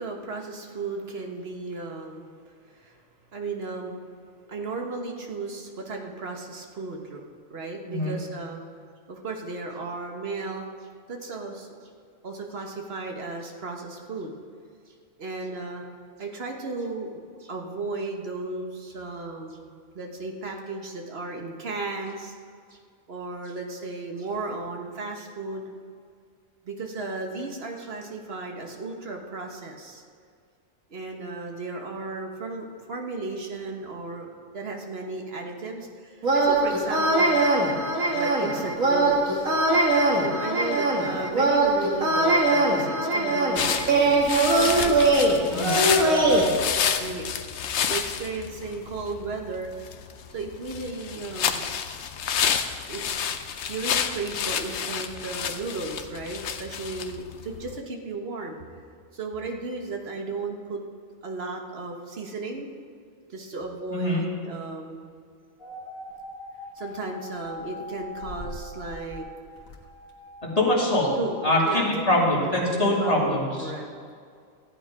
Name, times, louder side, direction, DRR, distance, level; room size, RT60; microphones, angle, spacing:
voice 1, 0.0-2.3 2.7-3.0 3.3-4.0 4.5-7.2 7.5-8.6 9.1-10.6 11.1-11.8 12.2-14.3 15.2-15.8 16.2-22.3 22.7-22.8 23.1-25.7 26.6-30.0 30.9-37.3 38.1-39.5 40.1-45.2 45.7-46.3 47.0-47.3 47.9-49.7 50.3-51.6 52.9-53.0 53.7-58.6 59.1-60.8 61.2-62.7 63.3-65.1 66.7-69.3 70.6-70.7 71.2-71.9 72.4-72.6 73.0-73.9, right 3 dB, 50° right, 2 dB, 1.5 m, -35 dB
sound 1, 36.2-46.4, right 2 dB, 80° right, 2.0 m, -22 dB
sound 2, 43.6-57.8, left 8 dB, 60° left, 0.9 m, -30 dB
voice 2, 63.9-64.2 70.6-71.1 71.4-73.7, left 1 dB, 25° left, -5 dB, 2.8 m, -23 dB
sound 3, 65.6-71.8, left 2 dB, 90° left, 1.8 m, -41 dB
15.0 x 9.0 x 4.8 m, 2.2 s
omnidirectional pair, 1.4 m